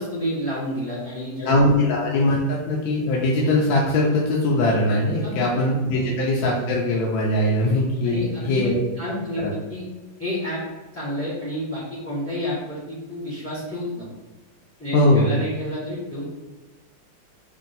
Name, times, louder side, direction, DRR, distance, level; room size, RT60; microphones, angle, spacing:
voice 1, 0.0-1.9 5.2-5.4 5.9-6.1 8.0-8.7 9.0-9.8 10.2-10.6 10.9-14.1 14.8-16.3, equal, 15° left, -8 dB, 0.5 m, -30 dB
voice 2, 1.4-8.8 9.4-9.5 14.9-15.3, left 1 dB, 75° left, -2 dB, 1.3 m, -21 dB
3.5 x 2.5 x 3.9 m, 1.2 s
omnidirectional pair, 2.3 m